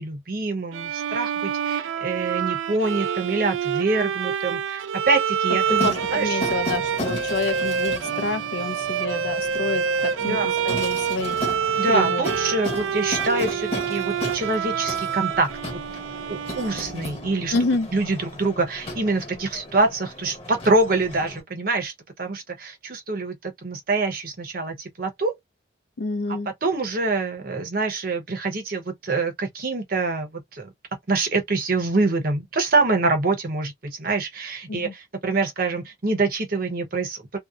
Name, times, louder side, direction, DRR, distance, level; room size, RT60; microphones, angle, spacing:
voice 1, 0.0-6.4 10.2-10.6 11.8-15.5 16.3-17.5 17.9-21.9 22.2-25.4 26.6-30.7 31.1-37.4, right 3 dB, 50° right, 0.7 m, -25 dB
Bowed string instrument, 0.7-17.3, right 7 dB, 90° right, 0.3 m, -27 dB
sound 1, 5.6-21.4, left 1 dB, 30° left, 1.2 m, -35 dB
voice 2, 5.8-11.4 11.9-12.2 17.5-17.9 26.0-26.5 34.7-34.9, left 3 dB, 65° left, 0.5 m, -28 dB
2.7 x 2.0 x 2.3 m
head